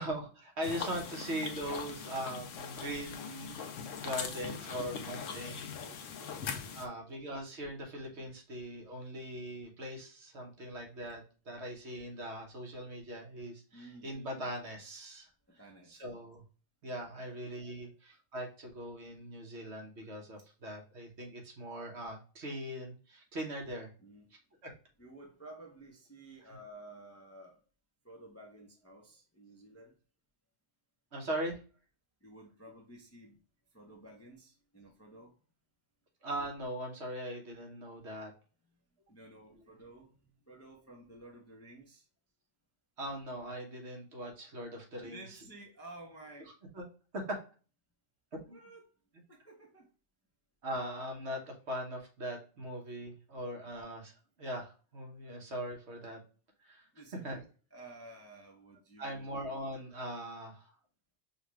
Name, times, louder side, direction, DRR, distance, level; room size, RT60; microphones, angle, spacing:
voice 1, 0.0-3.7 4.0-5.7 6.7-15.3 15.9-16.4 16.8-23.9 24.6-24.7 31.1-31.6 36.2-38.3 43.0-45.2 46.7-46.8 47.1-47.4 48.3-48.6 50.6-54.1 54.4-56.2 56.6-56.8 57.2-57.4 59.0-60.7, equal, 60° right, 1 dB, 1.4 m, -40 dB
sound 1, 0.6-6.9, left 6 dB, 80° left, 1.0 m, -41 dB
voice 2, 4.6-6.9 13.7-14.1 15.5-16.0 17.1-17.4 17.7-17.9 24.0-24.3 25.0-27.6 28.0-29.9 32.2-33.4 33.7-35.3 39.1-42.0 45.0-46.5 48.5-48.9 49.3-49.9 56.9-59.6, right 2 dB, 15° left, 0 dB, 0.6 m, -53 dB
5.5 x 2.4 x 3.0 m, 0.36 s
omnidirectional pair, 1.3 m